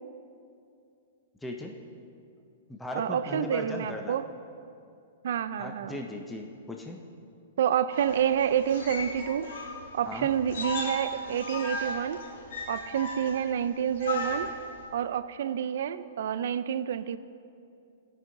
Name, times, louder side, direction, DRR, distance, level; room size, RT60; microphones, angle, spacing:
voice 1, 1.4-1.8 2.7-4.2 5.6-7.0 10.1-10.3, left 2 dB, 5° left, 2 dB, 0.5 m, -37 dB
voice 2, 3.0-4.3 5.2-6.0 7.6-9.5 9.9-12.2 12.7-14.5 14.9-17.2, right 9 dB, 65° right, 12 dB, 0.3 m, -28 dB
sound 1, 7.9-14.9, left 2 dB, 70° left, 1.5 m, -36 dB
15.0 x 5.3 x 3.8 m, 2.5 s
hypercardioid pair, 155°, 0 cm